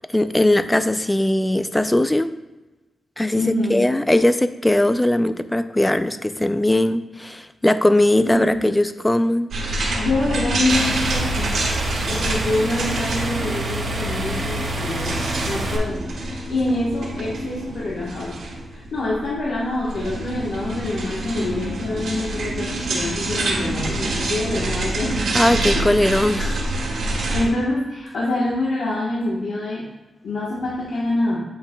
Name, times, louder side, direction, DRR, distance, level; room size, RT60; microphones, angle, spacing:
voice 1, 0.1-2.3 3.2-9.5 25.3-26.6, left 1 dB, 10° left, 11 dB, 0.3 m, -19 dB
voice 2, 3.3-3.9 8.2-8.8 10.0-11.5 12.1-15.2 15.4-18.3 18.7-25.2 25.7-25.9 27.3-29.8 30.2-31.4, left 2 dB, 75° left, -6 dB, 1.2 m, -26 dB
sound 1, 9.5-27.5, right 2 dB, 90° right, 1.8 m, -26 dB
sound 2, 10.7-15.8, right 2 dB, 50° right, 1.2 m, -28 dB
8.6 x 5.6 x 2.2 m, 1.1 s
wide cardioid pair, 125°, 0 cm